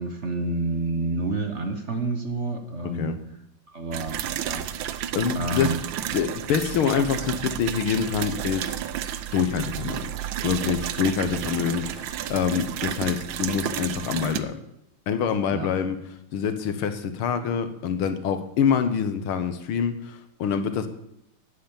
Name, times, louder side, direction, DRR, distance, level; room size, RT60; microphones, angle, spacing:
voice 1, 0.0-3.2 3.7-4.7 5.3-5.8 9.8-9.9 11.4-11.5 15.5-15.7, right 2 dB, 40° right, 6 dB, 1.2 m, -29 dB
sound 1, 3.9-14.4, right 11 dB, 70° right, 1.4 m, -31 dB
voice 2, 5.1-5.7 6.1-8.7 9.3-10.1 10.4-14.6 15.1-16.0 16.3-20.9, left 7 dB, 85° left, 9 dB, 2.0 m, -26 dB
11.5 x 9.4 x 7.2 m, 0.80 s
omnidirectional pair, 2.3 m